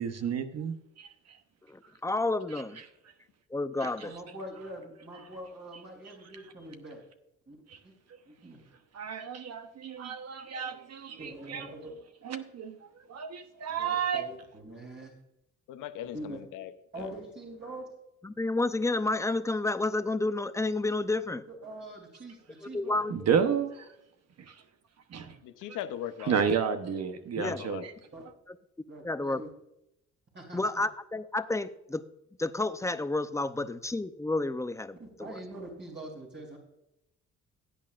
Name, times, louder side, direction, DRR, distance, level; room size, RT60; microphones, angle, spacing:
voice 1, 0.0-1.4 3.8-3.9 7.7-7.8 8.9-11.7 12.2-12.8 13.1-14.3 23.1-23.7 24.5-24.6 25.1-25.4 26.3-27.9, right 7 dB, 55° right, 1.0 m, -31 dB
voice 2, 1.7-2.8 3.5-4.1 18.2-21.4 22.6-23.1 27.4-27.6 29.0-29.4 30.5-32.1 32.4-35.3, left 2 dB, 10° left, 0.6 m, -30 dB
voice 3, 4.0-7.0 7.5-7.6 7.8-7.9 8.2-8.7 11.2-11.9 13.7-15.1 16.1-16.4 16.9-17.8 21.5-23.0 28.1-28.2 28.9-29.5 30.3-30.8 35.0-36.6, right 1 dB, 40° right, 3.3 m, -44 dB
voice 4, 15.7-17.0 25.4-26.4 27.4-27.9, left 11 dB, 90° left, 0.8 m, -39 dB
16.5 x 8.7 x 2.5 m
cardioid pair, 90°, 30 cm